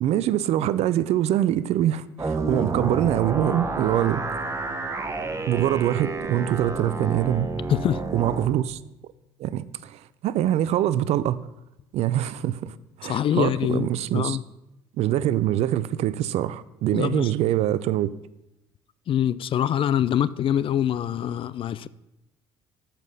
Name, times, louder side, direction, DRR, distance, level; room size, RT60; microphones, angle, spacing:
voice 1, 0.0-4.2 5.5-7.5 8.1-8.8 9.4-10.0 10.2-11.4 11.9-12.7 13.0-14.4 15.0-18.1, right 12 dB, 55° right, 0.5 m, -24 dB
sound 1, 2.2-8.5, right 3 dB, 25° right, 1.2 m, -30 dB
voice 2, 7.7-8.0 13.0-13.9 14.1-14.4 16.9-17.3 19.1-21.9, left 10 dB, 45° left, 0.4 m, -24 dB
6.9 x 5.8 x 6.8 m
hypercardioid pair, 60°, 13 cm